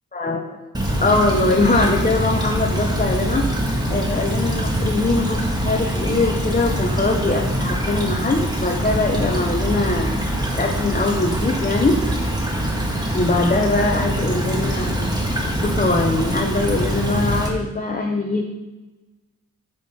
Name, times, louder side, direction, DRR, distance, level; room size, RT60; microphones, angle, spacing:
voice 1, 0.1-0.6 1.0-3.5 3.9-10.2 10.5-12.0 13.1-18.4, left 2 dB, 25° left, 2 dB, 0.8 m, -22 dB
Stream / Trickle dribble, 0.7-17.5, right 1 dB, 10° right, 1.5 m, -23 dB
6.9 x 6.2 x 4.2 m, 1.1 s
cardioid pair, 65°, 33 cm